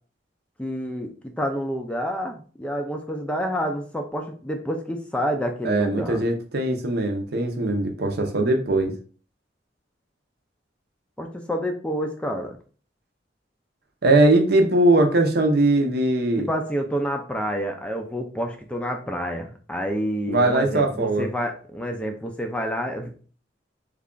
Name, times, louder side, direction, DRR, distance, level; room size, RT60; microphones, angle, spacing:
voice 1, 0.6-6.2 11.2-12.6 16.4-23.1, equal, 5° left, 3 dB, 0.4 m, -28 dB
voice 2, 5.6-8.9 14.0-16.5 20.3-21.2, right 2 dB, 60° right, 4 dB, 0.7 m, -20 dB
3.2 x 2.4 x 3.7 m, 0.39 s
head